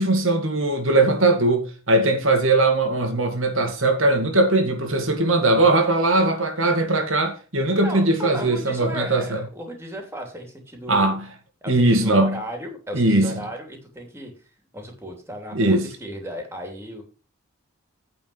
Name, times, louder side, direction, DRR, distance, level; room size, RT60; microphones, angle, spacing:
voice 1, 0.0-9.4 10.9-11.2 11.7-12.4 12.9-13.3 15.5-15.9, right 2 dB, 65° right, 2.0 m, -20 dB
voice 2, 7.8-11.2 11.6-14.3 14.7-17.0, equal, 10° right, 2.9 m, -35 dB
9.3 x 5.0 x 7.8 m
head